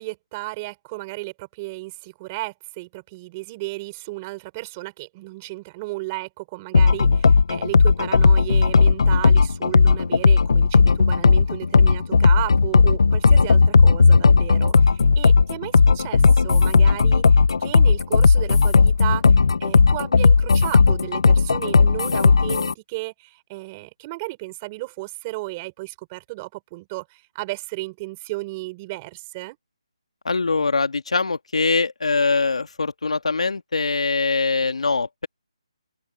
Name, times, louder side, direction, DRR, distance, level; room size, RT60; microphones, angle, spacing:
voice 1, 0.0-29.6, right 22 dB, 15° right, 4.6 m, -34 dB
sound 1, 6.7-22.7, left 4 dB, 55° left, 1.0 m, -15 dB
voice 2, 30.2-35.3, left 4 dB, 80° left, 2.4 m, -22 dB
open air
hypercardioid pair, 175°, 3 cm